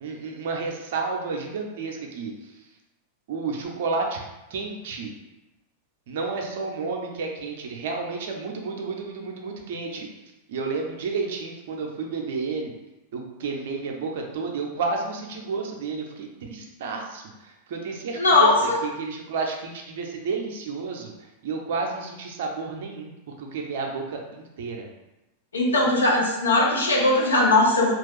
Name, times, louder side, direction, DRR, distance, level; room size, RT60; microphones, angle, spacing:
voice 1, 0.0-2.3 3.3-4.2 4.5-5.1 6.1-10.1 10.5-12.7 13.1-21.1 21.4-24.9, right 4 dB, 55° right, 2 dB, 0.5 m, -31 dB
voice 2, 18.1-18.7 25.5-27.9, left 2 dB, 75° left, -2 dB, 0.7 m, -19 dB
3.0 x 2.4 x 3.3 m, 0.96 s
figure-of-eight pair, 90°, 0 cm